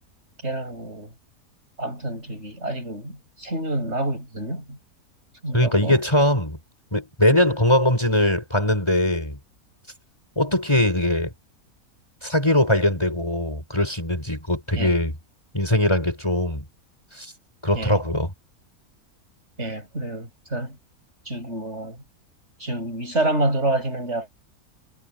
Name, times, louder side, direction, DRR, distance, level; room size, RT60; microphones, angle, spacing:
voice 1, 0.4-1.1 1.8-4.8 5.4-6.0 14.7-14.9 17.7-18.0 19.6-20.8 21.3-22.0 22.6-24.3, right 1 dB, 50° right, 8.1 m, -28 dB
voice 2, 5.5-6.6 6.9-9.4 10.3-11.3 12.2-15.1 15.5-16.6 17.1-17.3 17.6-18.3, left 1 dB, 20° left, 5.1 m, -21 dB
omnidirectional pair, 1.6 m